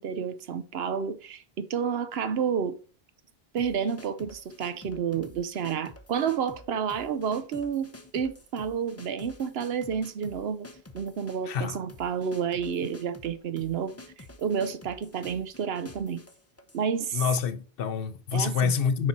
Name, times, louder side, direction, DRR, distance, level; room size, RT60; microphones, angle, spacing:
voice 1, 0.0-2.8 3.5-10.7 10.9-14.0 14.4-16.2 16.7-17.2 18.3-18.7, right 7 dB, 75° right, 0.9 m, -30 dB
sound 1, 3.6-16.9, left 2 dB, 15° left, 0.6 m, -49 dB
voice 2, 11.4-11.8 17.1-19.1, left 6 dB, 65° left, 0.8 m, -27 dB
6.6 x 5.0 x 4.2 m
omnidirectional pair, 1.1 m